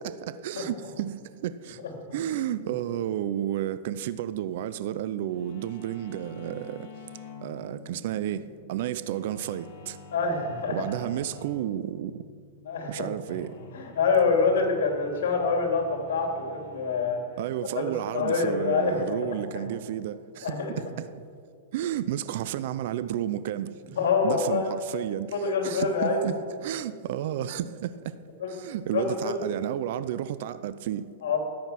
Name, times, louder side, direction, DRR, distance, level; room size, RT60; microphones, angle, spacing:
voice 1, 0.0-1.8 2.1-6.9 7.4-10.0 10.7-12.3 12.9-13.5 17.4-21.1 21.7-23.8 24.2-28.2 28.5-31.1, right 11 dB, 55° right, 0.5 m, -32 dB
sound 1, 5.3-19.8, left 4 dB, 60° left, 2.1 m, -49 dB
voice 2, 10.1-10.8 12.6-13.1 13.7-17.2 17.8-19.6 20.4-20.7 23.9-24.7 25.3-26.3 28.4-28.5 28.9-29.4 31.2-31.4, left 4 dB, 85° left, 3.1 m, -26 dB
13.5 x 9.4 x 5.9 m
supercardioid pair, 160°, 0 cm